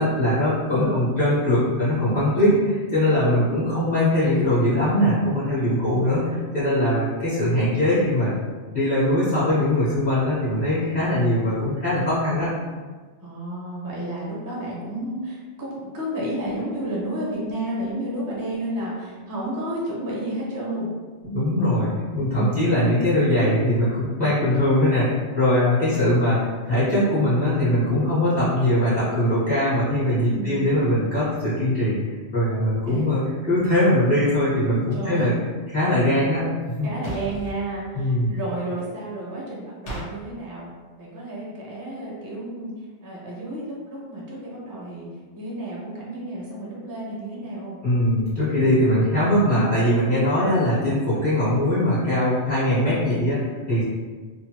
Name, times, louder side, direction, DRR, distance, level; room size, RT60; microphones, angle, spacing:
voice 1, 0.0-6.2 6.5-8.3 8.7-12.5 21.2-32.0 32.3-35.3 35.7-36.9 37.9-38.3 47.8-53.8, left 1 dB, 40° left, -12 dB, 1.1 m, -21 dB
voice 2, 0.7-1.1 3.4-4.0 5.9-6.1 13.2-20.9 22.3-22.7 25.9-26.1 30.3-31.0 32.9-33.2 34.9-35.3 36.1-36.2 36.8-40.7 41.0-42.7 43.0-45.1 45.3-47.8 50.3-50.6, right 1 dB, 25° right, -5 dB, 0.5 m, -32 dB
paper towel tear perforated, 37.0-37.6 39.9-40.1, right 1 dB, 85° left, 1.2 m, -34 dB
3.2 x 2.1 x 2.8 m, 1.4 s
omnidirectional pair, 1.2 m